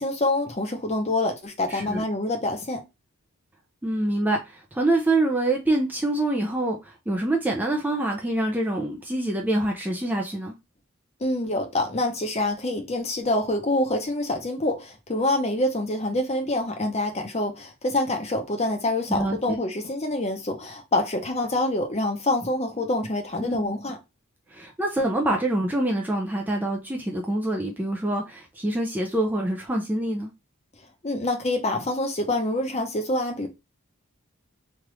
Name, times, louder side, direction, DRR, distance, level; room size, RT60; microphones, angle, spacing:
voice 1, 0.0-2.8 11.2-24.0 31.0-33.5, left 1 dB, 30° left, 0.7 m, -26 dB
voice 2, 1.7-2.0 3.8-10.5 19.1-19.6 23.4-23.8 24.5-30.3, right 1 dB, 10° right, 0.4 m, -26 dB
3.3 x 2.4 x 3.0 m
head